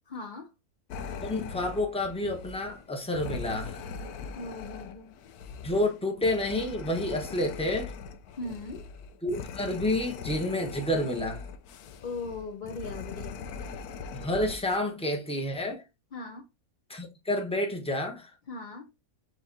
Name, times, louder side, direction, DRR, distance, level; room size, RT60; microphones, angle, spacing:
voice 1, 0.1-0.5 4.3-5.2 8.4-8.9 12.0-13.5 16.1-16.5 18.5-18.9, left 3 dB, 55° left, 0.5 m, -39 dB
sound 1, 0.9-14.8, left 5 dB, 85° left, 1.1 m, -41 dB
voice 2, 1.2-3.8 5.6-7.9 9.2-11.4 14.1-15.8 16.9-18.3, left 1 dB, 5° left, 0.8 m, -29 dB
6.1 x 3.0 x 2.6 m
omnidirectional pair, 1.6 m